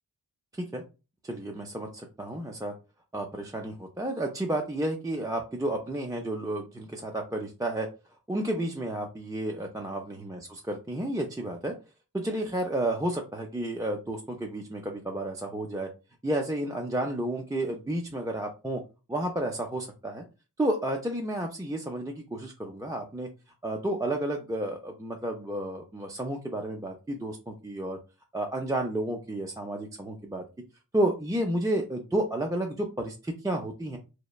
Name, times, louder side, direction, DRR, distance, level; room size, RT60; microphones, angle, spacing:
voice 1, 1.2-2.7 3.1-7.9 8.3-11.7 12.1-15.9 16.2-18.8 19.1-20.2 20.6-23.3 23.6-28.0 28.3-30.4 30.9-34.0, right 1 dB, 10° right, 1 dB, 0.4 m, -31 dB
3.0 x 2.1 x 2.3 m, 0.30 s
wide cardioid pair, 70°, 38 cm